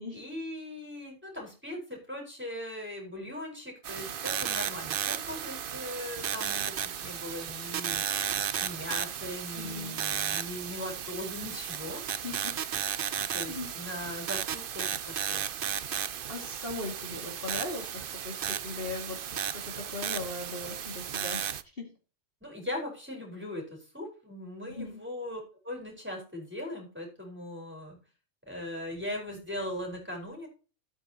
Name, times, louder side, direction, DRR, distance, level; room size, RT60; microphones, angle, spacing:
voice 1, 0.1-8.0 8.6-12.0 13.3-15.4 22.4-28.0 28.5-30.5, left 1 dB, 10° right, -1 dB, 4.4 m, -39 dB
sound 1, 3.8-21.6, right 9 dB, 50° right, 0.7 m, -34 dB
voice 2, 9.6-10.0 12.1-12.5 13.2-13.7 16.3-21.4 21.8-21.9 24.7-25.0, left 3 dB, 45° left, 1 dB, 2.4 m, -39 dB
14.5 x 8.4 x 2.9 m, 0.35 s
omnidirectional pair, 1.3 m